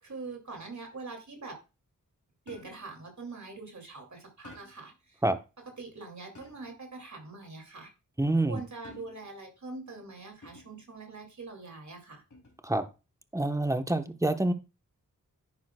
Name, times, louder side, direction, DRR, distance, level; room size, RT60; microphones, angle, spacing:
voice 1, 0.0-1.6 2.5-5.2 5.8-7.9 8.4-12.2, right 3 dB, 60° right, 2.6 m, -43 dB
sound 1, 2.5-3.0 4.4-5.0 6.3-6.9 8.8-9.4 10.4-10.9 12.3-12.7, left 2 dB, 60° left, 3.8 m, -52 dB
voice 2, 8.2-8.6 12.6-12.8 13.3-14.5, right 1 dB, 10° right, 1.1 m, -27 dB
10.5 x 9.8 x 2.3 m
cardioid pair, 50°, 33 cm